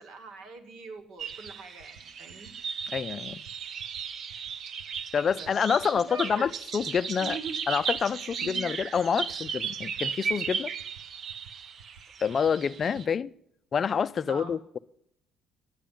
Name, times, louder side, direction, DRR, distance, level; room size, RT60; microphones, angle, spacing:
voice 1, 0.0-2.5 5.3-6.5 7.2-7.6 8.4-8.6 14.3-14.6, right 4 dB, 65° right, 1.8 m, -42 dB
sound 1, 1.0-1.1 1.3-1.5 1.8-2.0 2.3-2.5 2.8-3.0 3.3-3.5 3.8-4.0 4.3-4.5 4.8-5.0 5.3-5.5 5.8-6.0 6.3-6.5 6.8-7.0 7.3-7.5 7.8-8.0 8.3-8.5 8.8-9.0 9.3-9.5 9.8-10.0 10.3-10.5 10.8-11.0 11.3-11.5 11.8-12.0 12.3-12.5 12.8-13.0, right 6 dB, 90° right, 0.8 m, -52 dB
sound 2, 1.2-13.1, right 6 dB, 45° right, 0.5 m, -36 dB
voice 2, 2.9-3.4 5.1-7.4 7.7-10.7 12.2-13.3 13.7-14.8, left 6 dB, 35° left, 0.4 m, -27 dB
10.5 x 10.0 x 7.2 m
cardioid pair, 140°, 0 cm